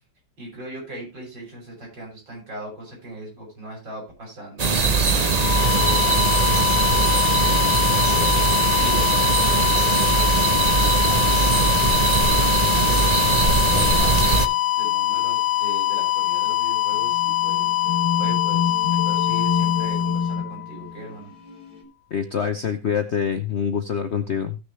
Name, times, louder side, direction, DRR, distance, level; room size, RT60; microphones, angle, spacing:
voice 1, 0.4-7.3 7.8-14.5 14.8-21.3, right 1 dB, 65° right, -1 dB, 7.2 m, -39 dB
sound 1, 4.5-8.9 10.0-10.2 11.1-11.7 12.1-12.6 13.0-14.5 14.8-15.7 16.5-16.6 16.9-21.8, left 5 dB, 20° left, 3.2 m, -31 dB
sound 2, 4.6-14.5, right 4 dB, 85° right, 0.3 m, -20 dB
sound 3, 5.2-21.0, left 15 dB, 85° left, 1.5 m, -23 dB
voice 2, 22.1-24.6, left 7 dB, 55° left, 8 dB, 0.8 m, -25 dB
17.0 x 6.5 x 3.1 m, 0.27 s
omnidirectional pair, 2.1 m